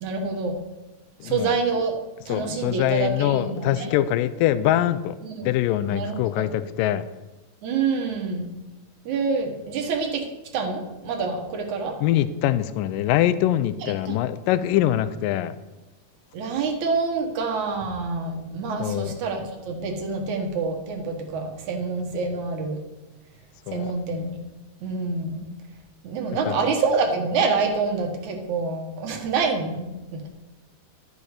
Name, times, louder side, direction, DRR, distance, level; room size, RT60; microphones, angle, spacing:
voice 1, 0.0-0.6 1.2-3.9 5.2-5.5 5.9-6.6 7.6-8.5 9.1-10.2 10.5-12.0 13.8-14.2 16.3-22.8 23.7-24.4 24.8-25.5 26.0-30.3, right 4 dB, 65° right, 3 dB, 2.6 m, -27 dB
voice 2, 1.2-1.5 2.3-5.2 5.4-7.0 12.0-15.6 18.8-19.1 23.7-23.9 26.5-26.6, left 12 dB, 85° left, 14 dB, 2.2 m, -23 dB
12.5 x 8.0 x 5.1 m, 1.0 s
omnidirectional pair, 3.9 m